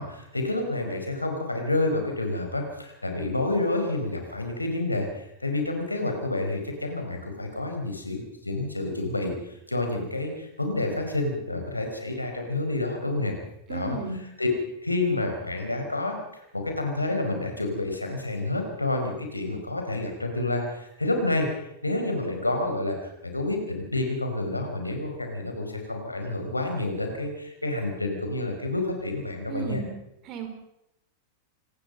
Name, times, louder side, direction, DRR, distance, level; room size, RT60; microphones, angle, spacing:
voice 1, 0.0-13.3 13.7-14.0 14.4-14.5 14.8-21.5 21.8-29.8, left 2 dB, 85° left, 4 dB, 5.0 m, -29 dB
voice 2, 13.7-14.2 29.5-29.9 30.2-30.5, right 5 dB, 40° right, 6 dB, 5.0 m, -33 dB
26.5 x 19.0 x 5.5 m, 0.83 s
figure-of-eight pair, 95°, 0 cm